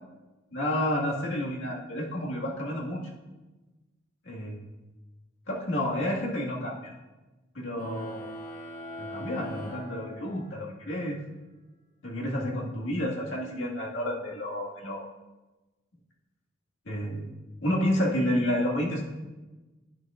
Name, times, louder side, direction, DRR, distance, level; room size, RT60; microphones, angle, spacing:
voice 1, 0.5-3.0 4.2-4.6 5.5-6.9 7.5-8.3 9.0-11.2 12.0-15.1 16.8-17.3 17.6-19.0, equal, 80° left, -3 dB, 1.9 m, -30 dB
sound 1, 7.7-10.7, left 1 dB, 40° left, 1.8 m, -41 dB
11.0 x 9.9 x 2.5 m, 1.1 s
head